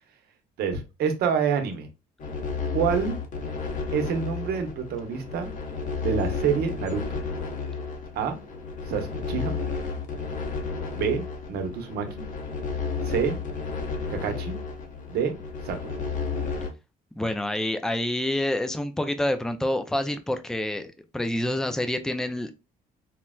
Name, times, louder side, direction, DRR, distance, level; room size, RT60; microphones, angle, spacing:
voice 1, 0.6-1.9 2.7-3.2 3.9-5.5 6.0-7.2 8.2-8.4 8.9-9.5 11.0-12.3 13.1-13.4 14.1-14.6 15.1-15.3 15.6-16.0, right 6 dB, 70° right, 0.8 m, -27 dB
sound 1, 2.2-16.7, left 4 dB, 50° left, 0.9 m, -32 dB
voice 2, 17.2-22.5, left 1 dB, 5° left, 0.4 m, -27 dB
4.3 x 2.0 x 2.2 m
cardioid pair, 110°, 17 cm